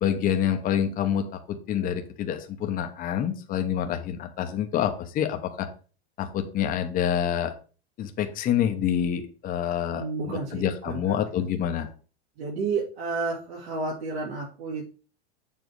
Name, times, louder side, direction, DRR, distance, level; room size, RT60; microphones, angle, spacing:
voice 1, 0.0-5.7 6.2-7.5 8.0-10.0 10.5-11.9, left 9 dB, 25° left, 6 dB, 0.9 m, -27 dB
voice 2, 9.9-11.0 11.4-11.5 12.4-14.9, right 4 dB, 80° right, -7 dB, 3.4 m, -31 dB
7.3 x 3.4 x 6.3 m, 0.37 s
supercardioid pair, 140°, 33 cm